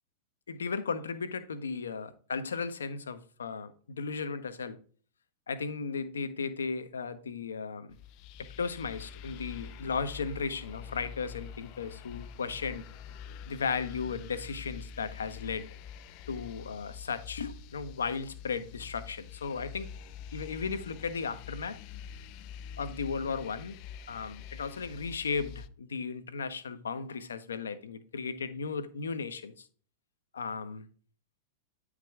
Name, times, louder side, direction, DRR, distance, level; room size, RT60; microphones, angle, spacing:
voice 1, 0.5-4.8 5.5-8.0 8.6-12.8 13.5-15.7 16.3-19.9 20.3-21.8 22.8-23.8 24.1-29.7 30.3-30.8, left 5 dB, 70° left, 0.7 m, -35 dB
sound 1, 7.9-25.7, left 7 dB, 45° left, 0.3 m, -46 dB
9.1 x 4.8 x 3.5 m
figure-of-eight pair, 95°, 0 cm